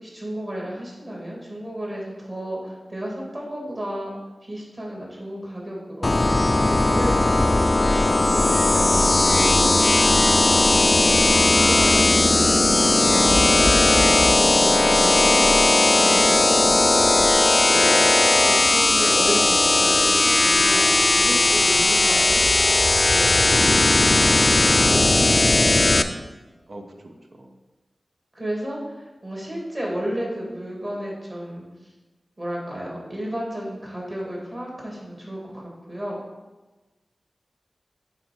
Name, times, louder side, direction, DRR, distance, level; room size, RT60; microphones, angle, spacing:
voice 1, 0.0-4.1 4.4-20.8 21.1-22.4 23.1-26.0 28.3-31.6 32.4-36.2, equal, 40° right, -3 dB, 2.3 m, -33 dB
sound 1, 6.0-26.0, left 2 dB, 45° left, 0.4 m, -17 dB
voice 2, 9.4-9.9 21.8-22.0 26.7-27.6, right 1 dB, 70° right, 3 dB, 0.9 m, -41 dB
8.8 x 3.4 x 4.8 m, 1.2 s
cardioid pair, 50°, 0 cm